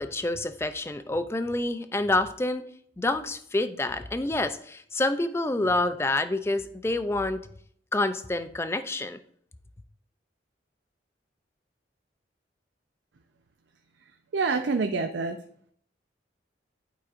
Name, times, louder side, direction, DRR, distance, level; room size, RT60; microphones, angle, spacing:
voice 1, 0.0-2.6 3.0-7.5 7.9-9.2, left 2 dB, 15° left, 11 dB, 0.3 m, -27 dB
voice 2, 14.3-15.4, right 4 dB, 75° right, 6 dB, 0.5 m, -26 dB
11.0 x 4.8 x 2.5 m, 0.65 s
head